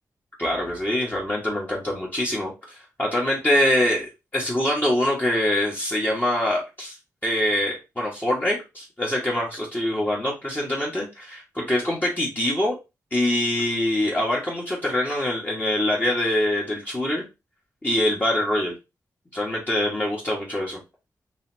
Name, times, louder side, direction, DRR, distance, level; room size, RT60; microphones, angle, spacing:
voice 1, 0.4-6.9 7.2-12.8 13.1-17.3 17.8-18.7 19.3-20.8, left 1 dB, 25° left, -5 dB, 1.6 m, -24 dB
4.0 x 3.0 x 2.8 m, 0.25 s
supercardioid pair, 40°, 7 cm